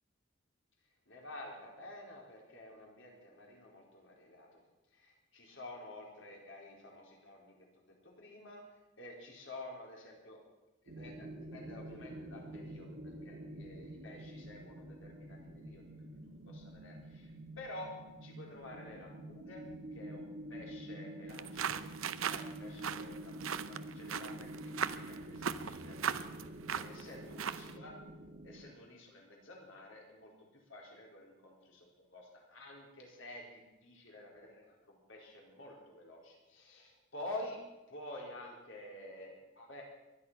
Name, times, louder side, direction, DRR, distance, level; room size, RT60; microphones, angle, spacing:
voice 1, 1.1-4.6 4.9-7.5 7.9-8.6 9.0-10.4 10.8-13.0 13.2-15.8 16.5-17.9 18.2-19.7 19.9-21.8 22.2-26.2 26.7-28.0 28.4-30.3 30.7-37.6 37.9-39.8, left 1 dB, 65° left, -1 dB, 4.4 m, -50 dB
sound 1, 10.9-28.7, right 1 dB, 55° right, 1.8 m, -48 dB
sound 2, 21.3-27.8, right 7 dB, 75° right, 0.7 m, -39 dB
23.0 x 10.5 x 5.7 m, 1.0 s
head